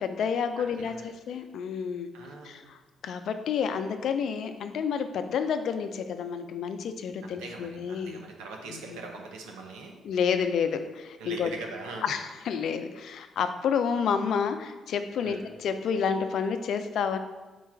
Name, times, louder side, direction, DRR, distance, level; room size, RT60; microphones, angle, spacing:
voice 1, 0.0-2.1 2.4-8.2 8.7-9.0 10.0-11.5 12.0-17.2, left 6 dB, 70° left, 9 dB, 0.3 m, -30 dB
voice 2, 0.6-1.1 2.1-2.7 7.2-9.9 11.2-12.1 15.2-15.4, right 3 dB, 90° right, 1 dB, 0.6 m, -42 dB
4.5 x 2.3 x 4.3 m, 1.2 s
supercardioid pair, 60°, 0 cm